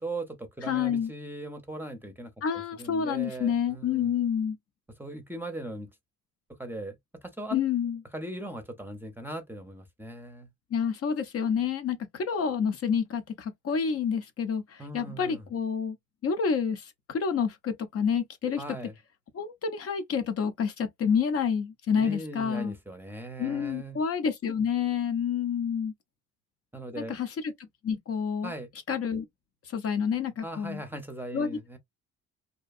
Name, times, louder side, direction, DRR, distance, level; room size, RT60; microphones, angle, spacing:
voice 1, 0.0-4.1 5.0-5.9 6.6-7.0 7.2-7.6 8.1-10.5 14.8-15.5 18.6-18.9 22.0-24.0 26.7-27.2 28.4-28.7 30.4-31.8, right 1 dB, 5° right, 0.6 m, -39 dB
voice 2, 0.7-1.1 2.4-4.6 7.5-8.0 10.7-16.0 16.2-18.6 19.3-22.8 23.4-25.9 27.0-27.5 27.8-28.5 28.9-29.2 29.7-30.8 31.3-31.6, left 7 dB, 50° left, 0.6 m, -28 dB
2.7 x 2.2 x 2.4 m
cardioid pair, 90°, 30 cm